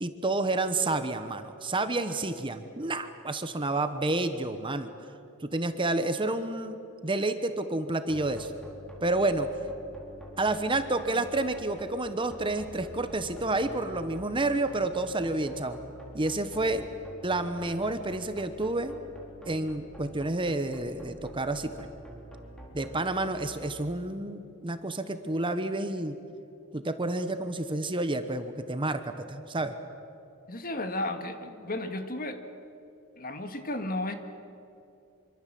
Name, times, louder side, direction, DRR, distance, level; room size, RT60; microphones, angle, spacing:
voice 1, 0.0-4.9 5.4-6.8 7.0-8.5 9.0-9.5 10.4-15.8 16.1-16.8 17.2-19.0 19.5-21.9 22.7-26.1 26.7-29.7, right 2 dB, 20° right, 9 dB, 1.1 m, -29 dB
sound 1, 8.1-23.7, equal, 5° left, 4.4 m, -47 dB
voice 2, 30.5-32.4 33.2-34.1, left 1 dB, 40° left, 7 dB, 1.9 m, -33 dB
26.0 x 24.5 x 7.7 m, 2.7 s
head